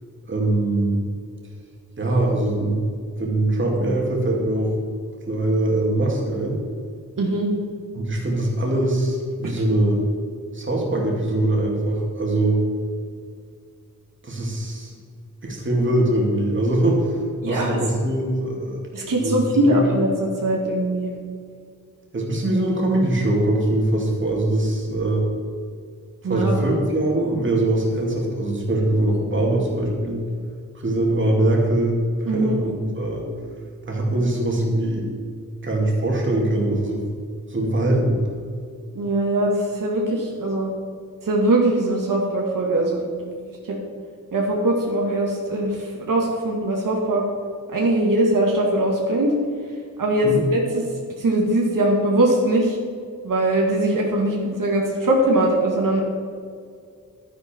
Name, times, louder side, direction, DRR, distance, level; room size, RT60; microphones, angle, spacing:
voice 1, 0.3-1.0 2.0-2.8 3.2-4.7 5.3-6.6 7.9-10.0 10.5-12.6 14.2-14.9 15.4-18.8 19.1-19.8 22.1-25.2 26.2-30.2 30.7-33.3 33.9-35.1 35.6-37.1 37.5-38.2 50.2-50.4, right 1 dB, 35° right, -1 dB, 2.5 m, -22 dB
voice 2, 7.2-7.5 9.4-9.5 17.4-17.8 18.9-20.1 20.4-21.1 26.2-26.6 32.3-32.6 38.9-40.7 41.2-43.4 43.7-43.8 44.3-47.2 47.7-49.3 50.0-50.6 51.2-52.8 53.2-56.0, right 1 dB, 75° right, -1 dB, 2.1 m, -21 dB
11.5 x 10.5 x 4.5 m, 2.2 s
wide cardioid pair, 125°, 32 cm